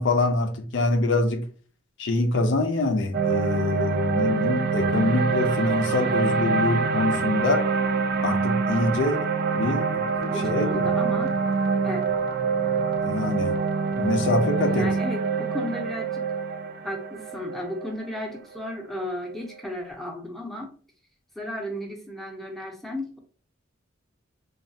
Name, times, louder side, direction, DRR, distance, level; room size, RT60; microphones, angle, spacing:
voice 1, 0.0-1.4 2.0-7.7 8.2-9.2 9.5-10.8 13.0-13.5 14.0-14.9, left 2 dB, 70° left, 0.5 m, -25 dB
sound 1, 3.1-19.4, right 5 dB, 55° right, 0.4 m, -25 dB
voice 2, 10.3-11.3 11.8-12.1 14.6-16.2 16.8-20.7 21.4-23.2, left 1 dB, ahead, 0.6 m, -34 dB
3.2 x 2.3 x 2.7 m
head